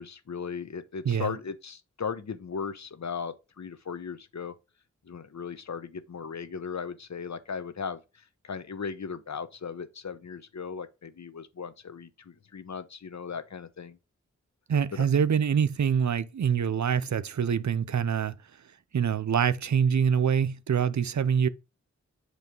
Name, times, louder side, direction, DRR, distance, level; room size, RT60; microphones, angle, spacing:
voice 1, 0.0-4.5 5.0-14.0 14.9-15.1, left 6 dB, 70° left, 1.0 m, -37 dB
voice 2, 14.7-18.3 18.9-21.5, right 7 dB, 70° right, 0.6 m, -25 dB
8.3 x 3.2 x 5.3 m
cardioid pair, 40°, 29 cm